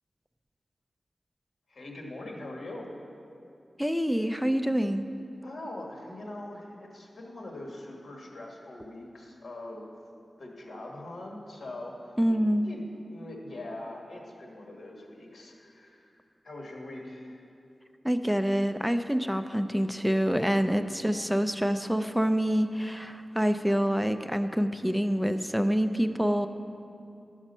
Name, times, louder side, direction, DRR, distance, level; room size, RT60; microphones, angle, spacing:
voice 1, 1.7-2.9 5.4-9.9 10.4-11.9 12.3-12.4 12.6-12.8 13.1-17.4, left 1 dB, 70° left, -1 dB, 1.6 m, -42 dB
voice 2, 3.8-5.1 12.2-12.7 18.0-26.5, equal, ahead, 8 dB, 0.4 m, -26 dB
12.5 x 6.1 x 5.4 m, 2.7 s
wide cardioid pair, 120°, 0 cm